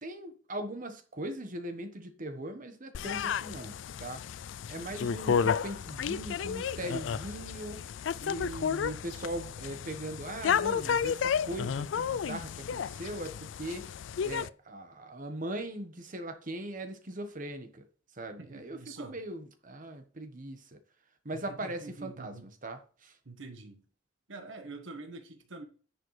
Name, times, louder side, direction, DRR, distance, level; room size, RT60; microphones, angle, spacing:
voice 1, 0.0-7.8 8.2-13.9 14.2-17.9 18.1-20.8 21.2-23.2, right 1 dB, 45° right, 1.3 m, -40 dB
sound 1, 2.9-14.5, left 7 dB, 70° left, 0.4 m, -32 dB
voice 2, 18.4-19.1 21.5-22.4 23.2-23.8 24.3-25.6, right 3 dB, 90° right, 1.4 m, -45 dB
10.5 x 6.7 x 3.3 m
head